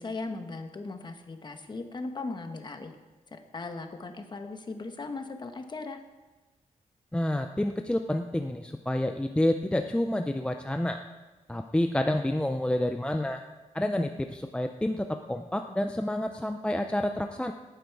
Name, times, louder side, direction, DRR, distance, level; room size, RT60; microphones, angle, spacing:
voice 1, 0.0-2.9 3.3-6.0, left 3 dB, 35° left, 6 dB, 1.1 m, -38 dB
voice 2, 7.1-11.0 11.5-13.4 13.7-17.5, left 1 dB, 5° left, 6 dB, 0.5 m, -29 dB
18.0 x 9.2 x 4.7 m, 1.2 s
wide cardioid pair, 155°, 14 cm